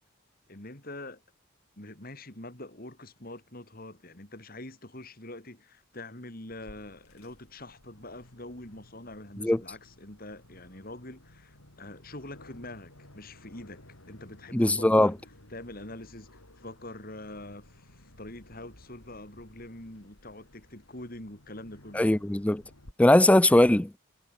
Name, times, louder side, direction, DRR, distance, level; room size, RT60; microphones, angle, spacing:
voice 1, 0.5-1.2 1.8-13.8 14.1-15.1 15.5-22.1 23.5-23.6, left 1 dB, 45° left, 3.6 m, -44 dB
Aircraft, 6.5-22.9, left 1 dB, 90° left, 6.1 m, -56 dB
sound 1, 12.9-21.0, left 1 dB, 70° left, 6.4 m, -65 dB
voice 2, 14.5-15.1 21.9-22.6 23.0-23.9, left 1 dB, 5° left, 0.3 m, -20 dB
head